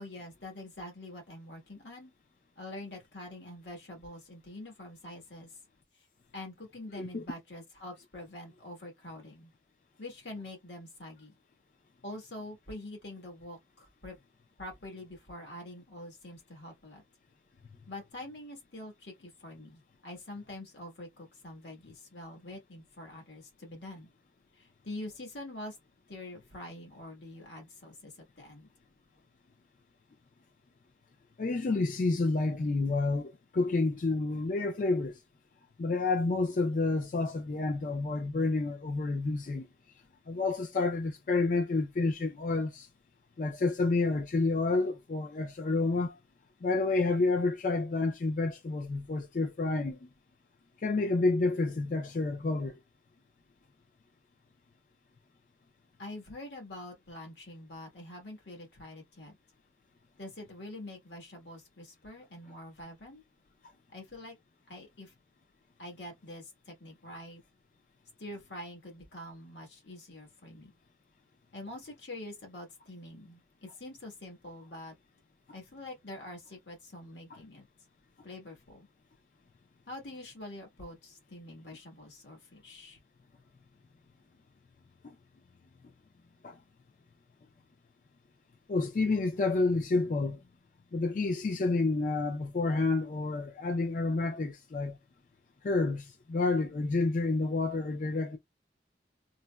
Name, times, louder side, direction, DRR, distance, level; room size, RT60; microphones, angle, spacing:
voice 1, 0.0-2.1 2.5-5.5 6.3-9.5 10.0-11.3 12.0-14.2 14.6-17.0 17.9-24.1 24.5-25.7 26.1-28.7 56.0-59.4 60.2-63.2 63.9-64.4 64.7-65.1 65.8-67.4 68.2-70.7 71.5-74.9 75.5-77.7 78.2-78.9 79.9-83.0, left 1 dB, 85° left, 1.5 m, -45 dB
voice 2, 31.4-35.2 35.8-39.7 40.3-42.9 43.4-46.2 46.6-50.0 50.8-52.7 85.0-85.1 86.4-86.6 88.7-90.4 90.9-95.0 95.6-98.4, left 3 dB, 45° left, 0.4 m, -29 dB
3.8 x 2.1 x 2.2 m
head